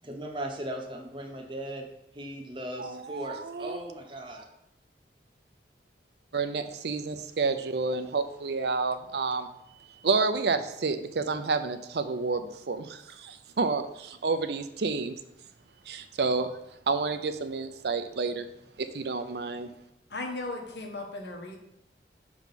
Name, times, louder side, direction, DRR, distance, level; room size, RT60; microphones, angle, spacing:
voice 1, 0.0-1.9 2.1-4.4, right 1 dB, 30° right, 2 dB, 0.9 m, -38 dB
voice 2, 2.8-3.8 6.3-9.5 9.9-15.2 15.9-16.5 16.9-18.4 18.8-19.7, right 4 dB, 70° right, 9 dB, 0.5 m, -30 dB
voice 3, 20.1-21.6, left 2 dB, 75° left, 2 dB, 1.2 m, -36 dB
6.1 x 3.7 x 5.8 m, 0.81 s
head